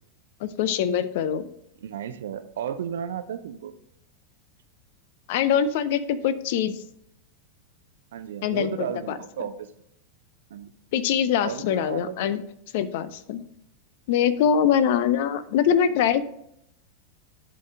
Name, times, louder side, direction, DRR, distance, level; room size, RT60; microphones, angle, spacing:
voice 1, 0.4-1.5 5.3-6.8 8.4-9.2 10.9-12.4 12.7-13.4 14.1-16.2, left 8 dB, 50° left, 14 dB, 0.5 m, -23 dB
voice 2, 1.8-3.7 8.1-9.7 10.5-10.7 11.4-12.5, right 9 dB, 60° right, 11 dB, 0.5 m, -34 dB
11.0 x 3.9 x 3.6 m, 0.74 s
figure-of-eight pair, 90°, 0 cm